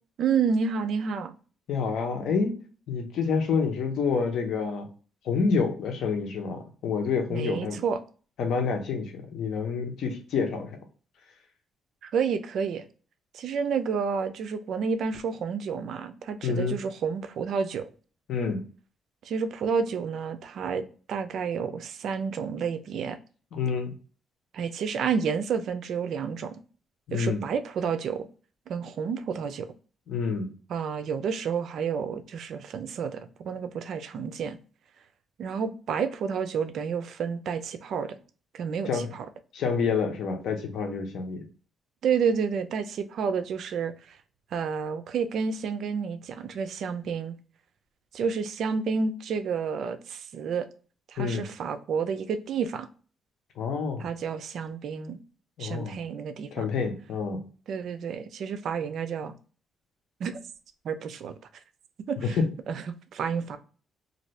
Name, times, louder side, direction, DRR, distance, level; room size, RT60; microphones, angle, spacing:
voice 1, 0.2-1.3 7.3-8.0 12.0-12.9 13.3-17.9 19.2-23.2 24.5-26.6 27.1-28.3 28.7-29.7 30.7-34.6 35.4-38.2 38.5-39.3 42.0-44.2 44.5-47.4 48.1-50.7 51.1-52.9 54.0-55.2 55.6-56.7 57.7-59.3 60.2-60.4 60.8-61.4 62.1-62.4 62.7-62.8 63.1-63.6, right 6 dB, 70° right, 0.4 m, -30 dB
voice 2, 1.7-2.6 2.9-4.9 5.2-7.8 8.4-10.8 16.4-16.8 18.3-18.6 23.5-24.0 27.1-27.4 30.1-30.5 38.9-39.1 39.5-41.4 51.2-51.5 53.6-54.1 55.6-56.0 56.5-57.4 62.2-62.4, left 5 dB, 75° left, 0.8 m, -28 dB
2.6 x 2.6 x 3.1 m
cardioid pair, 90°, 0 cm